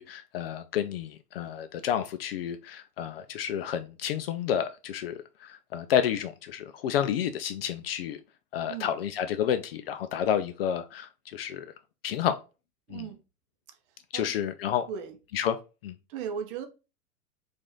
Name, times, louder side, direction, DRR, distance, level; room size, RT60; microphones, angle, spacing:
voice 1, 0.0-8.2 8.5-11.7 12.0-12.4 12.9-13.1 14.1-14.9 15.3-15.6 15.8-16.0, left 9 dB, 45° left, 0.4 m, -30 dB
voice 2, 12.9-13.2 14.1-14.3 14.9-15.2 16.1-16.7, right 7 dB, 35° right, 0.7 m, -36 dB
4.7 x 2.6 x 3.6 m
figure-of-eight pair, 90°, 45 cm